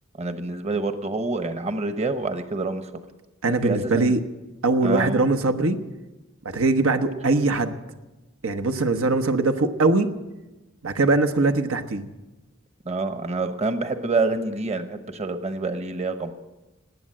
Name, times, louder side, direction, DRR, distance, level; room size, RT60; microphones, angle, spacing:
voice 1, 0.2-2.8 3.6-4.1 4.8-5.3 12.8-16.3, right 3 dB, 30° right, 9 dB, 0.9 m, -27 dB
voice 2, 3.4-4.2 4.6-5.8 6.4-7.7 8.4-10.1 10.8-12.0, right 3 dB, 90° right, 6 dB, 1.0 m, -21 dB
19.0 x 8.7 x 7.4 m, 1.1 s
head